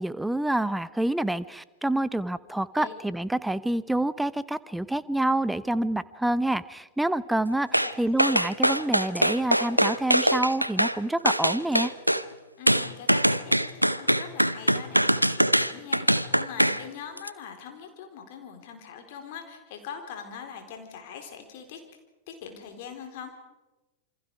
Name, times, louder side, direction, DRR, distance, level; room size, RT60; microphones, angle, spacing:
voice 1, 0.0-11.9, right 1 dB, 5° right, 17 dB, 0.8 m, -27 dB
sound 1, 7.7-7.9 8.2-11.0 11.3-12.2 12.7-16.8 17.2-17.3, equal, 90° right, 0.7 m, -22 dB
voice 2, 12.6-21.8 22.3-23.3, left 7 dB, 50° left, 5 dB, 4.1 m, -42 dB
27.5 x 25.5 x 4.8 m, 1.0 s
figure-of-eight pair, 90°, 0 cm